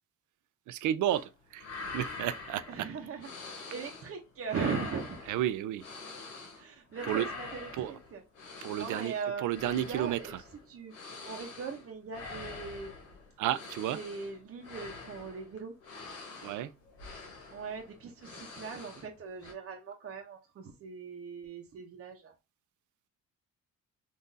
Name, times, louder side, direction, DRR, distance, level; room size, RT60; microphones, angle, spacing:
voice 1, 0.7-1.7 1.9-2.6 5.3-5.8 7.1-7.2 7.8-7.9 8.6-9.1 9.4-10.2 13.4-14.0 16.4-16.7, right 12 dB, 80° right, 0.4 m, -31 dB
sound 1, 1.1-1.3 1.5-4.1 4.4-6.6 6.9-19.1 19.4-19.5, left 4 dB, 90° left, 1.1 m, -45 dB
voice 2, 2.7-5.2 6.5-10.3 10.7-10.9 11.2-13.1 13.9-15.8 17.5-22.3, right 5 dB, 50° right, 0.7 m, -40 dB
3.8 x 2.5 x 2.6 m
cardioid pair, 90°, 30 cm